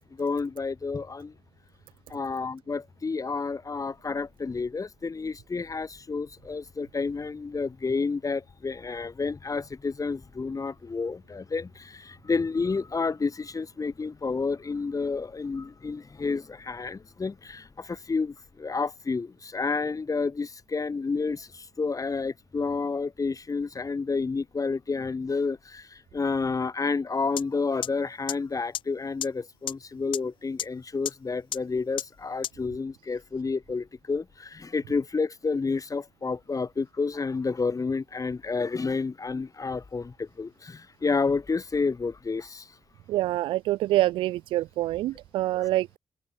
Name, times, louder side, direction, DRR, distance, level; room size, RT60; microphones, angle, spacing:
voice 1, 0.2-1.3 2.1-42.7 45.6-45.7, left 4 dB, 45° left, 1.5 m, -30 dB
sound 1, 27.4-27.5 27.8-27.9 28.3-28.4 28.7-28.8 29.2-29.3 29.7-29.8 30.1-30.2 30.6-30.7 31.1-31.2 31.5-31.6 32.0-32.1 32.4-32.5, left 11 dB, 80° left, 0.8 m, -29 dB
voice 2, 43.1-46.0, right 15 dB, 90° right, 0.4 m, -26 dB
supercardioid pair, 40°, 8 cm